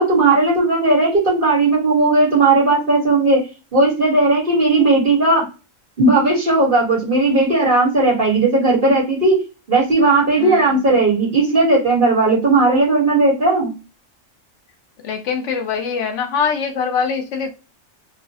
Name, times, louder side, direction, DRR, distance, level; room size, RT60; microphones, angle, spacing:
voice 1, 0.0-3.4 3.7-5.4 6.0-9.4 9.7-13.7, right 2 dB, 45° right, 1.4 m, -16 dB
voice 2, 10.4-10.8 15.0-17.5, left 6 dB, 70° left, 1.0 m, -23 dB
3.1 x 2.1 x 2.7 m
omnidirectional pair, 1.3 m